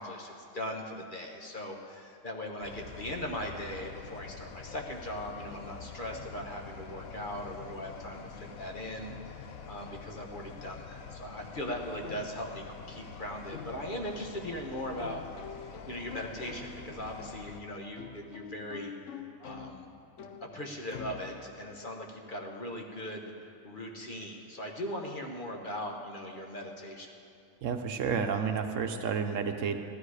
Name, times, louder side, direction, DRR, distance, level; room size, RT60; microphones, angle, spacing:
voice 1, 0.0-15.2 15.6-18.9 19.4-19.8 20.4-27.1, left 1 dB, 40° left, 1 dB, 1.2 m, -39 dB
sound 1, 2.6-17.6, left 6 dB, 85° left, 1.2 m, -47 dB
sound 2, 6.1-21.8, left 7 dB, 65° left, 1.0 m, -49 dB
voice 2, 27.6-29.8, right 6 dB, 70° right, 6 dB, 1.1 m, -31 dB
15.5 x 12.0 x 4.9 m, 2.5 s
omnidirectional pair, 1.4 m